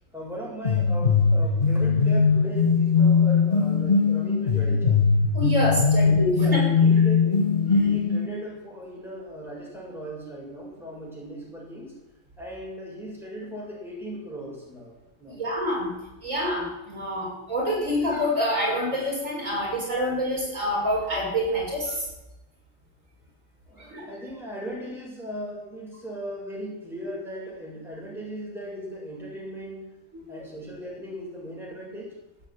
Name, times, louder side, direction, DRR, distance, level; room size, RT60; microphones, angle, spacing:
voice 1, 0.1-5.0 5.8-11.9 12.4-15.4 23.7-29.9 30.3-32.1, equal, ahead, -4 dB, 6.8 m, -38 dB
sound 1, 0.6-8.3, left 5 dB, 40° left, 1.7 m, -20 dB
voice 2, 5.3-6.6 15.4-15.9 16.2-22.1 23.9-24.1 30.1-30.2, equal, 80° right, -3 dB, 6.6 m, -26 dB
15.5 x 9.0 x 9.0 m, 0.96 s
omnidirectional pair, 1.3 m